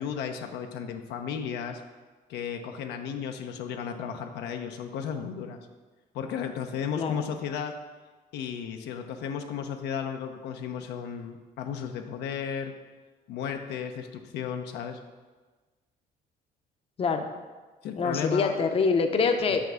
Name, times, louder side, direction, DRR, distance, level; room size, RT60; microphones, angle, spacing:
voice 1, 0.0-1.8 2.3-5.6 6.1-7.7 8.3-12.7 13.3-15.0 17.8-18.5, left 7 dB, 80° left, 5 dB, 0.8 m, -34 dB
voice 2, 18.0-19.6, left 5 dB, 35° left, 6 dB, 0.7 m, -25 dB
5.9 x 5.8 x 6.3 m, 1.3 s
cardioid pair, 110°, 17 cm